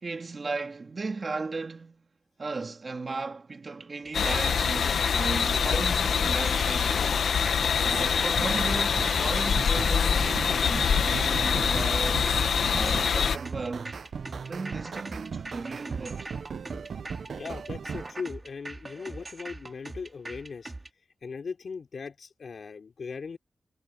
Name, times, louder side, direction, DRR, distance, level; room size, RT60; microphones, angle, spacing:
voice 1, 0.0-2.1 2.4-7.2 7.8-12.4 12.7-14.0 14.4-16.3, right 3 dB, 35° right, 2.2 m, -36 dB
sound 1, 4.1-13.4, left 6 dB, 75° left, 1.1 m, -25 dB
sound 2, 4.1-20.9, right 2 dB, 20° right, 5.2 m, -42 dB
sound 3, 8.0-18.1, right 6 dB, 60° right, 0.7 m, -38 dB
voice 2, 17.3-20.7 21.2-23.4, left 5 dB, 50° left, 3.8 m, -39 dB
wide cardioid pair, 170°, 0 cm